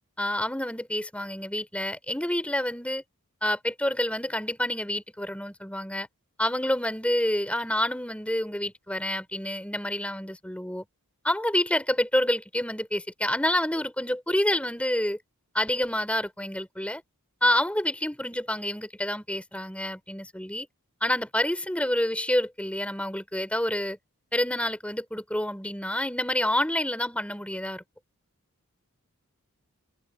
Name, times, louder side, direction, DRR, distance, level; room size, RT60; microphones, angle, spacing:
voice 1, 0.2-3.0 3.4-6.1 6.4-10.8 11.2-15.2 15.5-17.0 17.4-20.7 21.0-24.0 24.3-27.8, left 1 dB, 5° left, 3.7 m, -28 dB
head